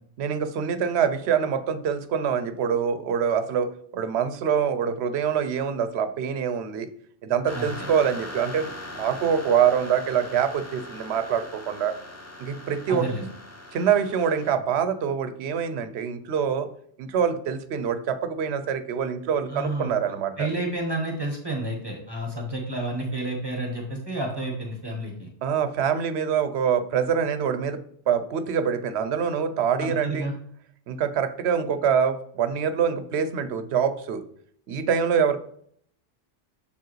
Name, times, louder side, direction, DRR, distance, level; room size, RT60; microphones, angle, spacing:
voice 1, 0.2-6.9 7.2-8.7 8.9-11.9 12.4-13.1 13.7-16.7 17.0-20.5 25.4-30.3 30.9-34.2 34.7-35.4, right 7 dB, 80° right, 11 dB, 0.8 m, -25 dB
sound 1, 7.5-14.5, left 1 dB, 15° left, 0.6 m, -40 dB
voice 2, 7.5-7.9 12.9-13.3 19.5-19.9 20.4-25.3 29.8-30.3, right 1 dB, 25° right, 0 dB, 1.1 m, -30 dB
7.0 x 4.6 x 3.1 m, 0.63 s
omnidirectional pair, 1.1 m